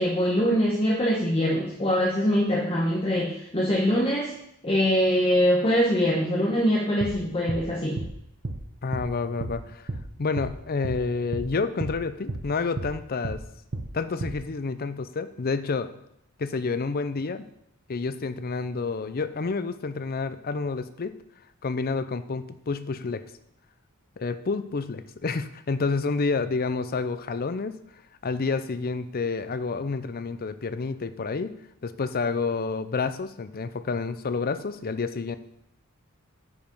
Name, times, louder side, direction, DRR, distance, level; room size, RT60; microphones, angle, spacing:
voice 1, 0.0-4.3 4.6-8.0, equal, 25° left, -3 dB, 1.2 m, -23 dB
sound 1, 7.0-7.2 7.5-7.6 8.0-8.1 8.4-8.6 8.9-9.1 9.4-9.6 9.9-10.0 10.4-10.5 10.8-11.0 11.3-11.5 11.8-12.0 12.3-12.4 12.8-12.9 13.2-13.4 13.7-13.9 14.2-14.4, right 2 dB, 50° right, 0.8 m, -32 dB
voice 2, 8.8-9.9 10.2-13.4 13.9-15.9 16.4-17.4 17.9-21.1 21.6-23.2 24.2-27.8 28.2-31.5 31.8-35.4, left 4 dB, 45° left, 11 dB, 0.5 m, -29 dB
9.4 x 5.2 x 5.4 m, 0.76 s
head